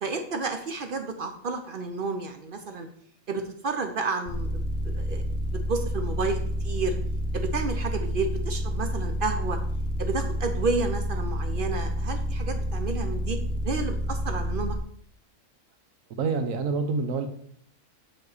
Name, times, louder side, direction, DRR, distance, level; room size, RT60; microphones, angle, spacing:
voice 1, 0.0-2.9 3.3-5.2 5.5-6.4 6.6-7.0 7.3-9.6 10.0-13.4 13.6-14.8, right 3 dB, 50° right, 6 dB, 0.7 m, -31 dB
sound 1, 4.3-14.8, equal, 10° left, 0.8 m, -29 dB
voice 2, 16.2-17.3, right 4 dB, 80° right, 7 dB, 1.2 m, -27 dB
6.5 x 5.2 x 4.0 m, 0.63 s
omnidirectional pair, 1.4 m